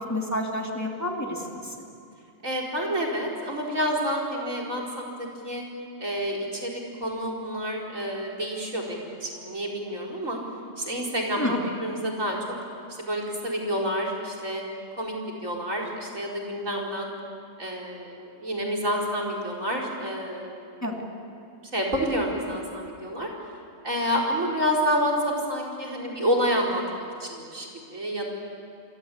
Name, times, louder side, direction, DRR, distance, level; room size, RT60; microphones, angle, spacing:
voice 1, 0.0-1.7 11.4-11.6 20.8-21.0, left 1 dB, 10° left, 0 dB, 3.2 m, -29 dB
voice 2, 2.4-5.6 6.0-10.4 10.8-12.4 13.0-14.6 15.0-15.1 15.4-17.1 17.6-20.8 21.7-23.3 23.8-28.3, equal, 75° right, 0 dB, 5.1 m, -29 dB
28.5 x 23.5 x 8.5 m, 2.5 s
omnidirectional pair, 1.4 m